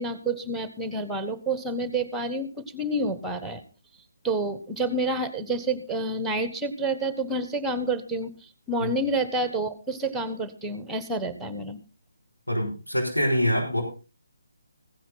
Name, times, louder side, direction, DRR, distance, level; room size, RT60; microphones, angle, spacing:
voice 1, 0.0-3.6 4.2-11.8, right 2 dB, 5° right, 12 dB, 1.1 m, -29 dB
voice 2, 12.5-13.8, equal, 85° left, 0 dB, 5.9 m, -24 dB
16.0 x 10.5 x 4.0 m, 0.33 s
figure-of-eight pair, 145°, 0 cm